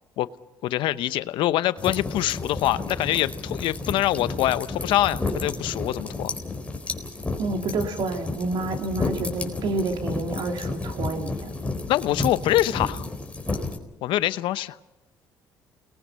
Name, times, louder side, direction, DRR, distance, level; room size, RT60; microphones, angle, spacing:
voice 1, 0.6-6.3 11.9-13.0 14.0-14.8, left 14 dB, 80° left, 15 dB, 0.8 m, -24 dB
sound 1, 1.8-13.8, left 3 dB, 15° left, 4.1 m, -31 dB
voice 2, 7.4-11.5, right 3 dB, 70° right, 4 dB, 3.1 m, -29 dB
29.0 x 20.0 x 5.7 m, 0.96 s
supercardioid pair, 75°, 8 cm